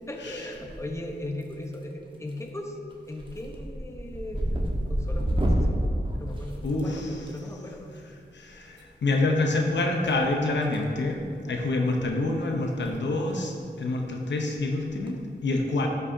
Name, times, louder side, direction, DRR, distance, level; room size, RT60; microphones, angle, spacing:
voice 1, 0.1-2.8 3.1-7.9 11.8-11.9, left 1 dB, 15° left, 2 dB, 1.0 m, -38 dB
sound 1, 0.5-1.1 1.4-1.9 2.3-2.6 2.9-7.3 8.7-8.8 10.0-10.8 11.1-11.3 11.9-12.0 12.2-12.3 12.7-12.9 13.2-13.3 14.8-15.1, equal, 30° right, 1.3 m, -29 dB
voice 2, 6.6-7.3 8.3-15.9, left 2 dB, 85° left, 1 dB, 0.8 m, -27 dB
12.5 x 6.2 x 2.8 m, 2.3 s
cardioid pair, 55°, 18 cm